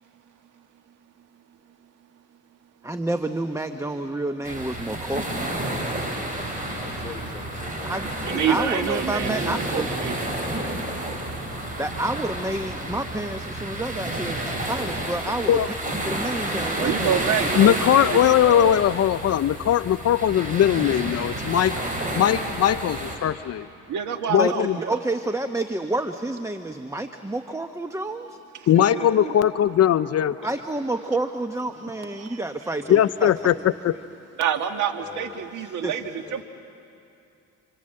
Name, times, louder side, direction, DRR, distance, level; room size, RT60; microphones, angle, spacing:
voice 1, 0.6-2.9 32.1-32.7, right 7 dB, 55° right, 1.2 m, -55 dB
voice 2, 2.8-5.3 7.8-8.1 8.5-9.9 11.8-15.8 16.1-17.5 24.4-28.4 30.4-33.3 35.8-36.0, right 2 dB, 10° right, 1.0 m, -29 dB
sound 1, 4.4-23.2, right 1 dB, 25° right, 5.9 m, -30 dB
voice 3, 5.1-6.0 6.3-8.2 28.7-29.4 32.7-32.9 33.2-34.1 35.0-36.4, left 4 dB, 20° left, 4.5 m, -43 dB
voice 4, 8.2-10.1 16.8-18.8 23.9-25.0 28.8-29.4 34.4-36.4, right 8 dB, 75° right, 1.8 m, -27 dB
voice 5, 17.6-21.8 22.1-23.7 24.3-24.8 28.7-30.4 32.9-33.9, left 10 dB, 55° left, 0.6 m, -20 dB
29.5 x 26.0 x 7.7 m
cardioid pair, 90°, 30 cm